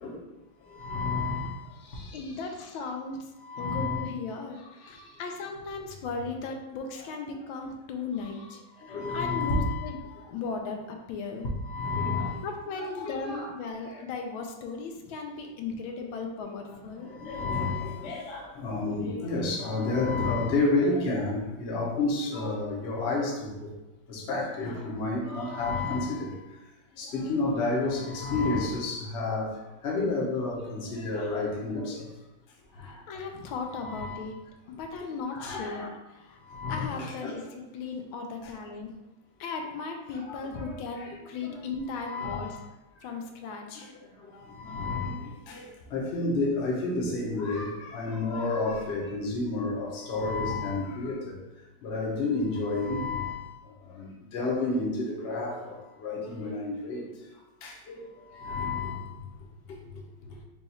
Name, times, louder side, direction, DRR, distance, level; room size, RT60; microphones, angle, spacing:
voice 1, 0.7-1.6 1.9-2.1 3.4-4.1 4.8-5.0 8.8-9.9 11.6-12.4 12.7-13.5 13.9-14.0 16.4-23.7 24.1-26.3 27.0-29.5 29.8-32.1 32.8-32.9 33.8-34.2 35.3-35.9 36.5-37.4 40.1-41.6 42.0-42.6 44.5-51.3 51.8-53.5 53.9-55.7 56.0-57.0 57.6-58.0 58.3-59.1, left 3 dB, 50° left, -3 dB, 0.8 m, -30 dB
voice 2, 2.1-3.3 3.6-8.6 8.9-10.0 10.3-11.5 12.4-17.1 32.8-36.4 36.7-38.9 39.4-42.6 43.0-43.9, left 4 dB, 85° left, 3 dB, 1.4 m, -37 dB
4.0 x 2.4 x 4.2 m, 1.0 s
omnidirectional pair, 2.1 m